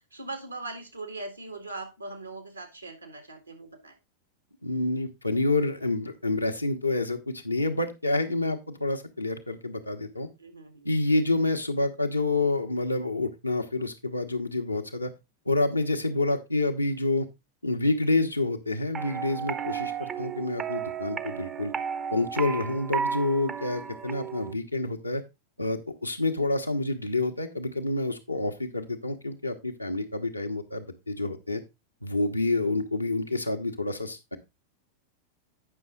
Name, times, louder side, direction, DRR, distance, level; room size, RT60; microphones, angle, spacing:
voice 1, 0.1-4.0 10.4-10.9 19.6-19.7 32.6-32.7, right 2 dB, 85° right, 5 dB, 1.9 m, -40 dB
voice 2, 4.6-10.3 10.8-15.1 15.5-17.3 17.6-21.7 22.1-25.2 25.6-31.6 32.0-34.4, left 2 dB, 85° left, 5 dB, 1.1 m, -28 dB
sound 1, 18.9-24.5, right 7 dB, 25° right, 0.7 m, -33 dB
8.8 x 6.2 x 3.7 m, 0.23 s
figure-of-eight pair, 90°, 0 cm